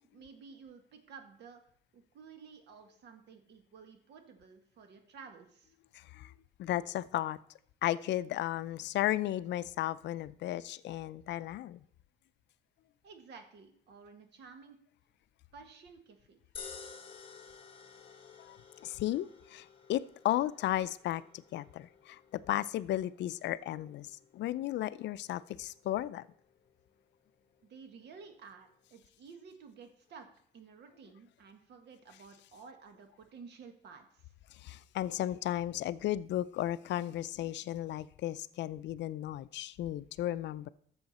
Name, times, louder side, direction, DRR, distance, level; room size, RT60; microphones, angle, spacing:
voice 1, 0.1-1.6 1.9-5.8 13.0-14.8 15.5-16.4 27.6-30.3 30.5-34.3, right 5 dB, 70° right, 6 dB, 1.6 m, -53 dB
voice 2, 5.9-6.3 6.6-7.4 7.8-11.8 18.4-18.6 18.8-26.3 34.5-40.7, left 13 dB, 75° left, 17 dB, 0.4 m, -34 dB
sound 1, 16.5-28.9, left 6 dB, 30° left, 1.5 m, -54 dB
13.0 x 7.0 x 4.1 m, 0.64 s
cardioid pair, 145°, 19 cm